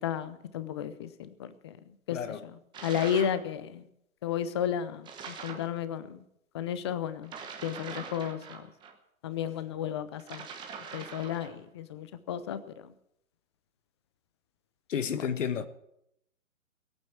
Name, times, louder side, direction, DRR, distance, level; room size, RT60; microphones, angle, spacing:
voice 1, 0.0-2.2 2.8-3.8 4.2-6.2 6.5-7.3 7.6-8.7 9.2-10.5 10.9-12.9 15.1-15.2, left 9 dB, 20° left, 0.5 m, -33 dB
voice 2, 2.1-2.4 14.9-15.7, left 7 dB, 60° left, 1.4 m, -31 dB
sound 1, 2.7-3.4 5.0-5.7 7.2-8.9 10.2-11.6, right 6 dB, 10° right, 1.1 m, -43 dB
17.5 x 9.0 x 7.2 m
figure-of-eight pair, 135°, 42 cm